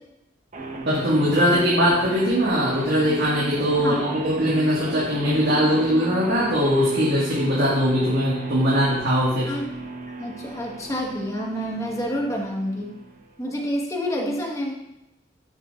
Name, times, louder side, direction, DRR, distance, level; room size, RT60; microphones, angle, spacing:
sound 1, 0.5-13.5, right 3 dB, 45° right, 1.1 m, -35 dB
voice 1, 0.9-9.5, equal, 65° right, -7 dB, 1.9 m, -21 dB
voice 2, 3.8-4.1 9.5-9.7 10.2-12.9 13.4-14.7, equal, 20° left, -1 dB, 1.4 m, -28 dB
10.5 x 7.3 x 2.5 m, 0.88 s
head